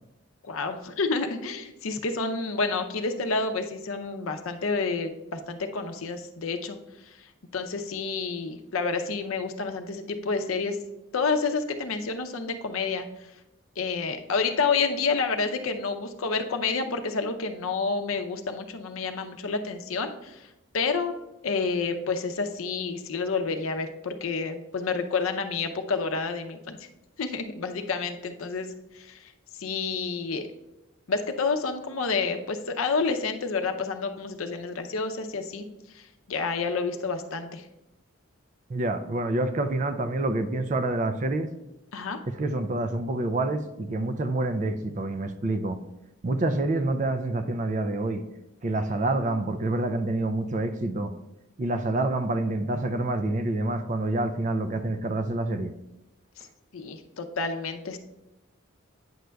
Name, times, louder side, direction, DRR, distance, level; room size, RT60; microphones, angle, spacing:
voice 1, 0.5-6.8 7.5-10.8 11.1-13.1 13.8-20.5 20.7-21.1 21.4-26.8 27.2-30.5 31.1-35.7 35.9-36.0 36.3-37.6 41.9-42.2 56.4-56.5 56.7-58.0, left 4 dB, 85° left, 7 dB, 0.6 m, -29 dB
voice 2, 38.7-41.5 42.3-45.8 46.2-48.2 48.6-51.1 51.6-55.7, right 2 dB, 35° right, 9 dB, 0.4 m, -27 dB
9.3 x 6.2 x 2.3 m, 0.95 s
head